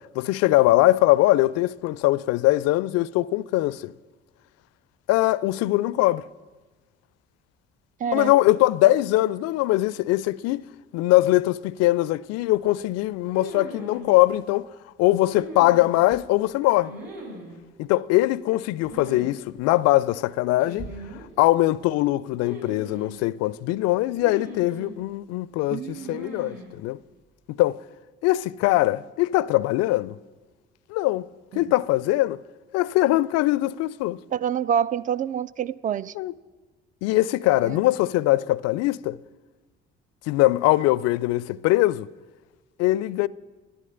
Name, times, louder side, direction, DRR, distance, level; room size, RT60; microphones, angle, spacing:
voice 1, 0.2-3.9 5.1-6.3 8.1-10.6 10.9-14.7 15.0-16.9 17.8-20.9 21.4-27.0 27.5-27.8 28.2-30.2 30.9-31.3 31.5-32.4 32.7-34.2 36.2-36.3 37.0-39.2 40.3-42.1 42.8-43.3, left 17 dB, 50° left, 0.4 m, -21 dB
voice 2, 8.0-8.3 25.7-26.4 34.3-36.1 37.6-37.8, right 8 dB, 25° right, 0.4 m, -27 dB
sound 1, 13.3-14.0 15.3-16.2 16.8-17.6 18.8-19.3 19.6-19.7 20.6-21.3 22.4-23.2 24.2-25.0 25.9-26.7, right 1 dB, 55° right, 4.5 m, -39 dB
11.5 x 11.0 x 6.7 m
figure-of-eight pair, 45°, 32 cm